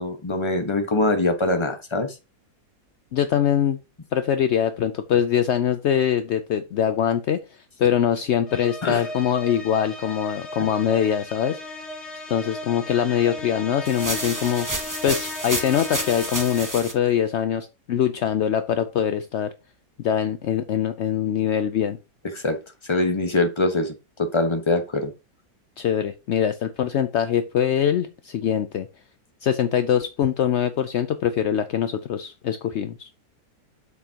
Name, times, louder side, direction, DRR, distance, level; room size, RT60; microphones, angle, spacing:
voice 1, 0.0-2.1 8.8-9.0 10.6-10.7 22.3-22.6 22.8-25.1, left 2 dB, 20° left, 6 dB, 1.1 m, -23 dB
voice 2, 3.1-3.8 4.1-11.6 12.3-19.5 20.0-22.0 25.8-28.9 29.4-33.1, left 9 dB, 70° left, 10 dB, 0.6 m, -23 dB
sound 1, 8.5-17.0, left 2 dB, 45° left, 1.8 m, -36 dB
sound 2, 13.9-16.9, right 2 dB, 15° right, 1.1 m, -30 dB
8.2 x 7.0 x 2.9 m, 0.27 s
omnidirectional pair, 1.8 m